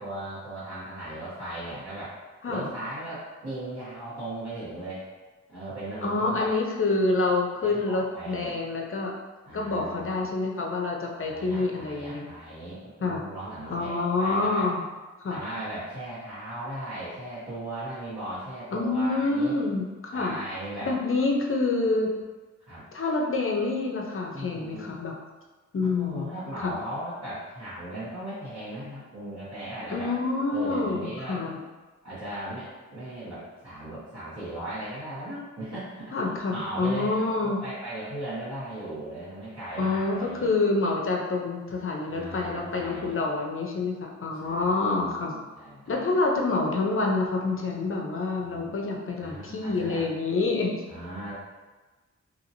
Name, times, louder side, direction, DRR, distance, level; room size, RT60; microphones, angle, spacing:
voice 1, 0.0-2.1 2.5-5.0 5.5-6.5 7.6-8.6 9.4-10.3 11.1-14.7 15.3-19.5 20.1-20.9 22.7-22.8 24.3-24.9 25.8-30.1 30.5-31.4 32.0-36.1 36.5-40.5 42.1-43.2 44.4-46.0 48.4-48.7 49.2-50.0 50.9-51.3, right 1 dB, 55° right, -14 dB, 1.5 m, -37 dB
voice 2, 6.0-9.1 9.5-12.3 13.0-13.2 13.7-14.8 15.2-15.4 18.7-20.4 20.8-22.1 22.9-25.1 25.7-26.3 26.6-26.7 29.9-31.6 36.1-37.6 39.8-45.3 45.9-50.8, left 3 dB, 45° left, 0 dB, 0.5 m, -27 dB
2.8 x 2.8 x 2.7 m, 1.3 s
wide cardioid pair, 90°, 31 cm